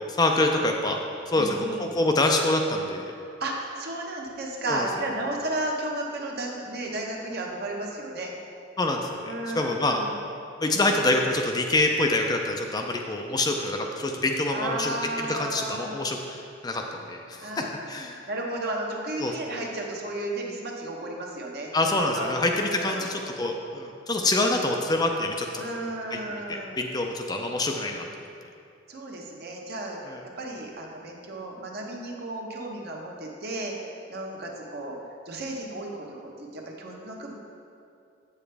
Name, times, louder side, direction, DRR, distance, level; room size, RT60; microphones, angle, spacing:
voice 1, 0.1-1.0 1.3-3.1 4.7-4.9 8.8-10.0 10.6-16.8 17.1-18.2 19.2-19.3 21.7-25.7 26.1-26.2 26.5-28.1 30.1-30.2, left 2 dB, 20° left, 2 dB, 0.4 m, -26 dB
voice 2, 1.3-1.9 3.2-8.3 9.2-10.1 14.5-16.0 17.4-17.7 18.3-22.4 22.7-23.1 25.6-26.8 28.9-30.0 30.4-33.7 34.1-34.9 35.3-37.3, right 1 dB, 55° right, 0 dB, 1.0 m, -33 dB
7.7 x 7.1 x 3.3 m, 2.5 s
head